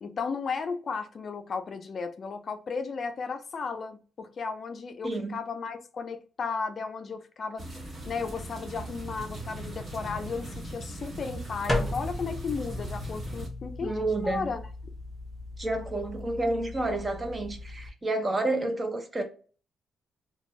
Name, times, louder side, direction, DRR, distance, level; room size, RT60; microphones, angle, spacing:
voice 1, 0.0-7.6 8.1-14.6, left 5 dB, 50° left, 0.4 m, -34 dB
voice 2, 5.0-5.4 13.8-14.5 15.6-19.2, right 2 dB, 25° right, 0.7 m, -30 dB
sound 1, 7.6-13.5, right 1 dB, 40° right, 1.2 m, -39 dB
sound 2, 11.7-17.9, left 2 dB, 15° left, 0.8 m, -36 dB
2.5 x 2.2 x 3.0 m
cardioid pair, 85°, 0 cm